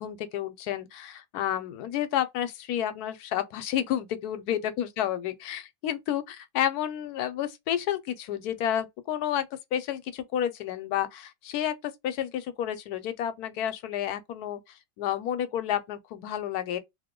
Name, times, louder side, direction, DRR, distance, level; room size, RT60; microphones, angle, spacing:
voice 1, 0.0-16.8, left 11 dB, 75° left, 1.0 m, -30 dB
2.8 x 2.0 x 3.6 m
omnidirectional pair, 1.7 m